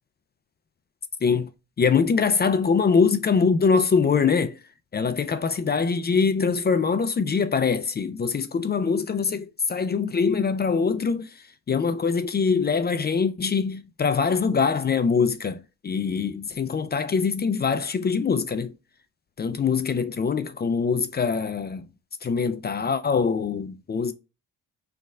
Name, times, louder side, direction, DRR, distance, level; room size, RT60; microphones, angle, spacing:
voice 1, 1.8-4.6 4.9-18.7 19.4-21.9 22.2-24.1, left 5 dB, 25° left, 0.4 m, -23 dB
3.3 x 2.1 x 3.5 m
hypercardioid pair, 45°, 39 cm